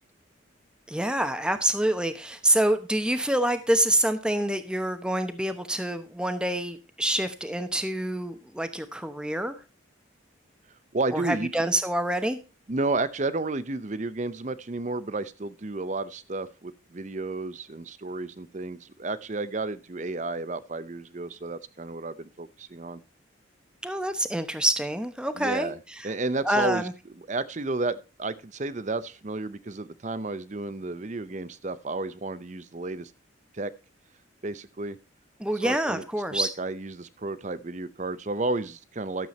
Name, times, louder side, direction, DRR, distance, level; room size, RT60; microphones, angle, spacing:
voice 1, 0.9-9.5 11.1-12.4 23.8-25.7 26.0-26.1 26.4-26.9 35.4-36.5, right 1 dB, 5° right, 9 dB, 0.9 m, -26 dB
voice 2, 10.9-11.6 12.7-23.0 25.4-25.8 26.0-26.8 27.3-33.1 33.5-33.7 34.4-35.0 35.6-36.0 36.3-39.3, right 2 dB, 35° right, 15 dB, 0.6 m, -32 dB
12.5 x 7.6 x 4.2 m, 0.31 s
head